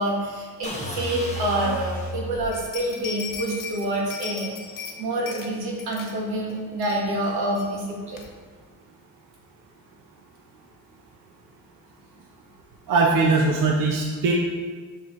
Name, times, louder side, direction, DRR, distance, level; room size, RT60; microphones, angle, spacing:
voice 1, 0.0-4.5 5.0-8.2, right 1 dB, 90° right, -2 dB, 1.6 m, -27 dB
sound 1, 0.6-2.6, equal, 20° left, 0.9 m, -32 dB
sound 2, 2.5-5.0 5.3-5.5 5.8-6.1 6.5-6.6 6.8-7.2 7.6-7.7 8.2-8.3, left 6 dB, 60° left, 0.9 m, -37 dB
voice 2, 12.9-14.3, right 3 dB, 60° right, -1 dB, 0.8 m, -20 dB
7.0 x 5.7 x 3.1 m, 1.5 s
cardioid pair, 140°, 37 cm